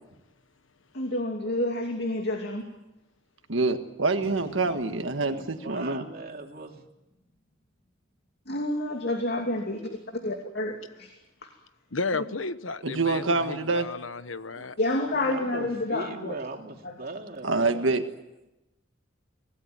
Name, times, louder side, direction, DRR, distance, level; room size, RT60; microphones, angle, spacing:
voice 1, 0.9-2.6 8.5-9.8 10.2-11.1 14.8-16.3 16.8-16.9, left 1 dB, 55° left, 3 dB, 2.7 m, -29 dB
voice 2, 3.5-6.0 12.8-13.9 17.4-18.0, right 3 dB, 75° right, 7 dB, 1.7 m, -26 dB
Boom, 4.2-7.5, left 1 dB, 30° left, 3.4 m, -50 dB
voice 3, 5.3-6.8 14.6-14.7 15.0-17.9, right 2 dB, 50° right, 3 dB, 2.9 m, -39 dB
voice 4, 11.9-14.7, left 3 dB, 90° left, 12 dB, 1.2 m, -33 dB
25.5 x 17.5 x 9.3 m, 0.98 s
head